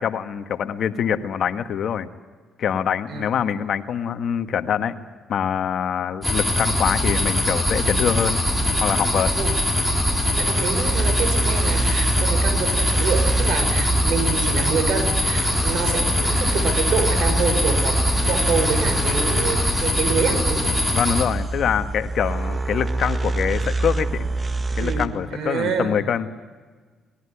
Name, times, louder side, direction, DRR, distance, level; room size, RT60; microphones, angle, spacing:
voice 1, 0.0-2.1 2.6-4.9 5.3-8.4 8.8-9.3 20.9-24.3 24.8-26.3, left 8 dB, 65° left, 9 dB, 1.5 m, -24 dB
sound 1, 6.2-21.3, left 1 dB, ahead, 5.4 m, -22 dB
sound 2, 7.0-25.1, right 2 dB, 30° right, 1.9 m, -27 dB
voice 2, 10.4-20.8 24.8-25.9, right 5 dB, 70° right, 9 dB, 5.8 m, -27 dB
23.5 x 20.5 x 9.8 m, 1.4 s
cardioid pair, 90°, 0 cm